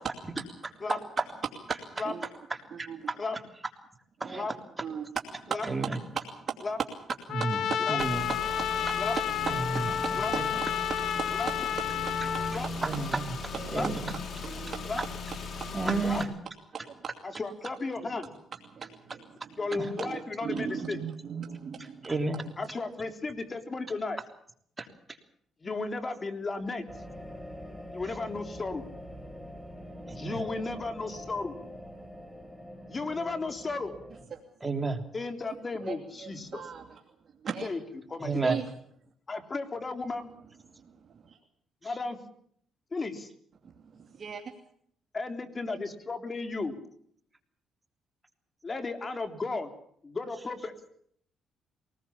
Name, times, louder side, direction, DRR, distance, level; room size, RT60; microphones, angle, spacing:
voice 1, 1.9-2.3 2.7-3.1 4.2-4.5 4.8-5.1 5.4-6.6 7.6-9.0 9.7-10.1 11.2-11.4 11.8-11.9 12.2-12.4 13.5-13.9 14.4-14.9 15.6-16.0 16.7-17.1 18.7-19.6 20.0-22.1 22.4-22.5 34.3-34.4 35.8-37.0 37.4-37.7 38.3-38.7 40.8-41.4 43.6-44.5, right 6 dB, 45° right, 3 dB, 2.7 m, -39 dB
voice 2, 2.8-3.2 4.2-4.4 5.7-5.9 7.3-8.2 9.5-9.6 10.3-10.4 12.8-13.2 13.7-14.1 15.7-16.3 19.7-19.8 22.0-22.4 24.8-24.9 30.1-30.4 34.6-35.0 38.2-38.6, right 3 dB, 20° right, 6 dB, 3.3 m, -31 dB
Trumpet, 7.3-12.6, left 9 dB, 70° left, 1.2 m, -31 dB
Car / Engine, 8.0-16.2, left 3 dB, 55° left, 4.0 m, -38 dB
voice 3, 17.2-18.3 19.6-21.0 22.6-24.2 25.6-26.9 27.9-28.9 30.1-31.6 32.9-34.0 35.1-36.6 37.6-38.6 39.3-40.3 41.8-42.2 42.9-43.3 45.1-46.8 48.6-49.7 50.0-50.7, left 3 dB, 30° left, 7 dB, 3.6 m, -34 dB
sound 1, 26.9-34.2, equal, 5° left, 6.6 m, -44 dB
23.5 x 20.0 x 7.2 m, 0.65 s
cardioid pair, 90°, 0 cm